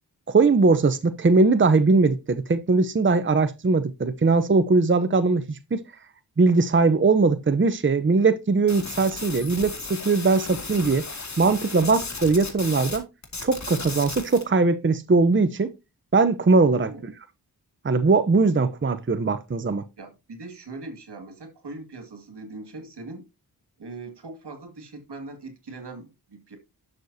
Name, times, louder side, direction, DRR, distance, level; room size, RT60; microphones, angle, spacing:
voice 1, 0.3-5.8 6.4-11.1 11.4-13.1 13.4-15.7 16.1-17.1 17.8-19.8, right 3 dB, 30° right, 0.8 m, -20 dB
sound 1, 8.7-13.0 13.2-14.4, left 3 dB, 45° left, 2.2 m, -35 dB
voice 2, 16.8-17.1 20.0-23.3 23.8-26.6, right 3 dB, 80° right, 2.3 m, -40 dB
11.0 x 6.6 x 2.7 m
wide cardioid pair, 80°, 40 cm